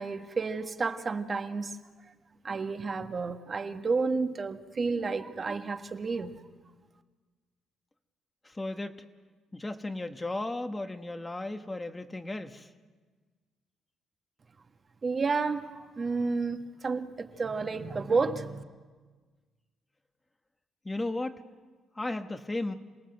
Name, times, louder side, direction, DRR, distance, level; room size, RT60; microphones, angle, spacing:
voice 1, 0.0-1.8 2.4-6.5 15.0-15.7 16.0-18.6, right 4 dB, 40° right, 1.4 m, -31 dB
voice 2, 8.4-8.9 9.5-12.7 20.8-21.4 21.9-22.7, left 2 dB, 15° left, 1.2 m, -35 dB
27.5 x 18.0 x 7.9 m
cardioid pair, 90°, 0 cm